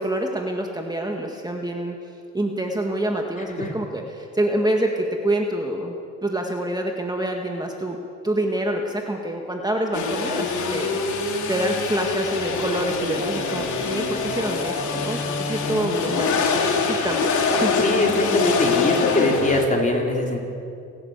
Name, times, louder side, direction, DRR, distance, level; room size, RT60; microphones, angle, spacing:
voice 1, 0.0-2.0 2.3-5.9 6.2-8.0 8.2-11.2 11.5-16.4 16.8-17.8, right 1 dB, 15° right, 2 dB, 1.8 m, -26 dB
sound 1, 9.9-19.7, left 4 dB, 75° left, 2.9 m, -24 dB
voice 2, 17.8-20.4, left 2 dB, 25° left, 0 dB, 4.0 m, -22 dB
27.5 x 11.5 x 8.2 m, 2.6 s
cardioid pair, 90°, 30 cm